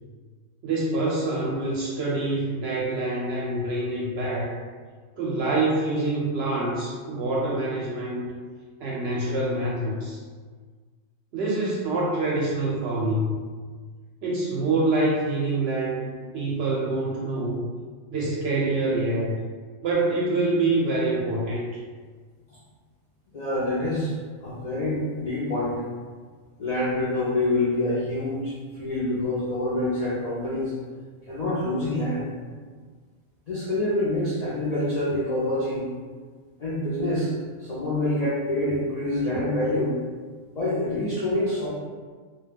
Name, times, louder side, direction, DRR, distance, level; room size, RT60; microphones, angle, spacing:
voice 1, 0.6-4.6 5.2-8.3 8.8-10.2 11.3-13.4 14.2-17.6 18.1-19.4 19.8-21.6, right 2 dB, 65° right, -4 dB, 0.7 m, -26 dB
voice 2, 23.3-24.1 24.4-25.8 26.6-30.7 31.3-32.3 33.5-35.8 36.6-37.3 37.6-40.1 40.5-41.7, left 1 dB, 75° left, -8 dB, 0.3 m, -26 dB
2.2 x 2.2 x 3.3 m, 1.5 s
omnidirectional pair, 1.4 m